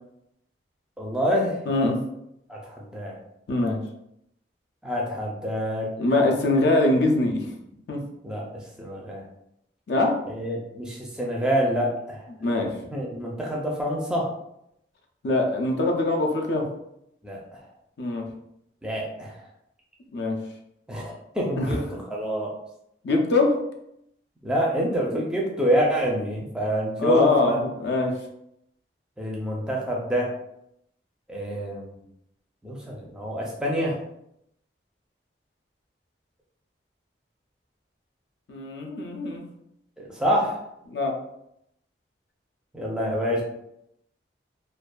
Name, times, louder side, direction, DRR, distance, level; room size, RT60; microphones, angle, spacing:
voice 1, 1.0-1.6 2.5-3.2 4.8-5.9 8.2-9.2 10.3-12.3 12.9-14.3 17.2-17.6 18.8-19.5 20.9-22.5 24.4-27.6 29.2-30.3 31.3-32.0 32.6-34.0 40.0-40.6 42.7-43.4, equal, 5° right, -3 dB, 0.4 m, -27 dB
voice 2, 1.7-2.0 3.5-3.8 6.0-7.5 7.9-8.0 9.9-10.2 12.4-12.7 15.2-16.7 18.0-18.2 20.1-20.4 21.6-21.8 23.0-23.6 27.0-28.2 38.5-39.4 40.9-41.2, left 2 dB, 65° left, 2 dB, 0.4 m, -23 dB
2.6 x 2.3 x 2.2 m, 0.79 s
head